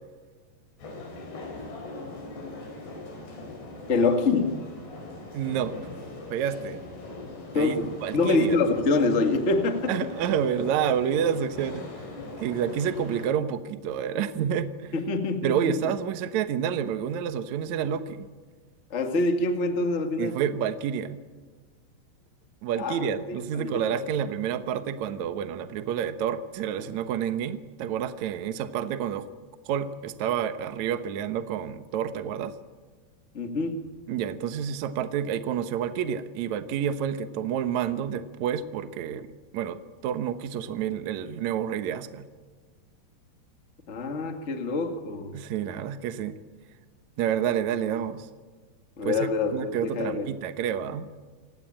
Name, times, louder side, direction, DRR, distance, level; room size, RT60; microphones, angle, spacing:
sound 1, 0.8-13.3, left 2 dB, 70° left, 7.2 m, -41 dB
voice 1, 3.9-4.6 7.5-9.9 14.9-15.7 18.9-20.4 22.8-23.8 33.3-33.9 43.9-45.4 49.0-50.3, left 3 dB, 85° left, 5 dB, 0.6 m, -26 dB
voice 2, 5.3-5.9 6.3-6.8 7.5-7.7 8.0-8.6 9.9-11.9 12.4-14.9 15.4-18.3 20.2-21.2 22.6-29.3 29.7-32.5 34.1-42.3 45.3-46.4 47.2-48.3 49.1-51.2, right 8 dB, 80° right, 10 dB, 1.6 m, -29 dB
28.5 x 17.0 x 8.8 m, 1.4 s
omnidirectional pair, 5.0 m